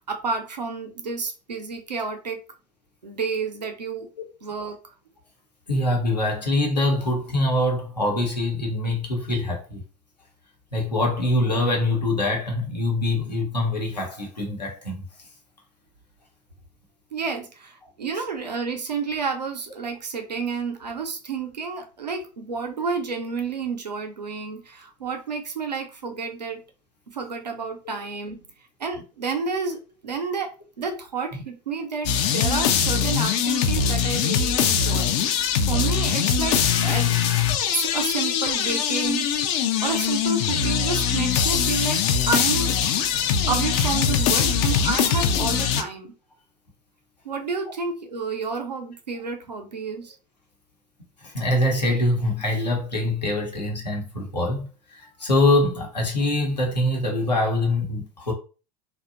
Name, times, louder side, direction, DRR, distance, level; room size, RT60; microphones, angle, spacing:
voice 1, 0.0-2.4 3.0-4.1 4.4-4.8 17.1-26.6 27.1-28.4 28.8-37.2 37.7-39.4 39.8-42.7 43.5-46.1 47.2-50.1, right 5 dB, 85° right, 0.6 m, -30 dB
voice 2, 5.7-9.8 10.7-15.0 18.2-18.3 27.8-28.0 51.2-58.3, left 1 dB, 85° left, 0.9 m, -24 dB
sound 1, 32.0-45.8, left 7 dB, 50° left, 0.4 m, -22 dB
2.7 x 2.3 x 2.4 m
figure-of-eight pair, 80°, 21 cm